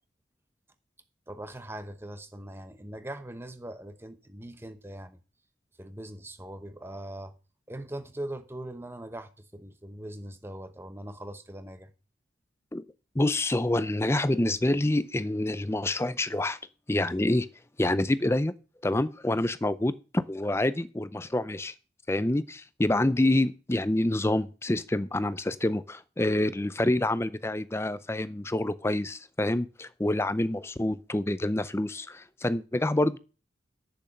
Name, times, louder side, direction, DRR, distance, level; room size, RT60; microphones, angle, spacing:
voice 1, 1.3-5.2 5.8-7.3 7.7-11.9, right 1 dB, 10° right, 0.8 m, -41 dB
voice 2, 13.1-16.6 16.9-17.5 17.8-18.5 18.8-21.7 22.1-33.2, left 1 dB, 15° left, 0.5 m, -27 dB
7.9 x 7.0 x 6.5 m
head